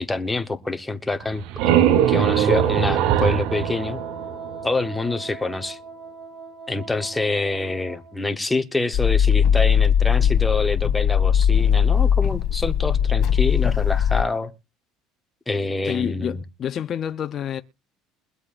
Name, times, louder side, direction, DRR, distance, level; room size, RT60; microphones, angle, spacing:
voice 1, 0.0-4.0 4.6-5.8 6.7-14.5 15.5-16.4, left 3 dB, 10° left, 0.9 m, -26 dB
sound 1, 1.2-4.9, right 10 dB, 70° right, 0.9 m, -21 dB
Wind instrument woodwind instrument, 3.4-8.2, right 4 dB, 25° right, 3.7 m, -39 dB
sound 2, 8.9-14.2, left 8 dB, 55° left, 2.5 m, -19 dB
voice 2, 15.8-17.6, left 9 dB, 40° left, 0.6 m, -28 dB
22.0 x 8.1 x 2.5 m
cardioid pair, 130°, 0 cm